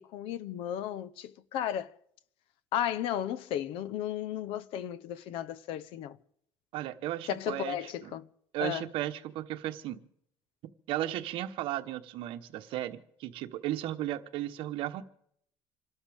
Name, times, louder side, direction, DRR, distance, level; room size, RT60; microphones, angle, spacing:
voice 1, 0.0-1.9 2.7-6.2 7.3-8.3 8.6-8.9, left 10 dB, 65° left, 0.8 m, -34 dB
voice 2, 6.7-7.8 8.0-8.1 8.5-10.0 10.9-15.0, right 14 dB, 60° right, 1.1 m, -35 dB
27.5 x 12.5 x 3.5 m
cardioid pair, 160°, 10 cm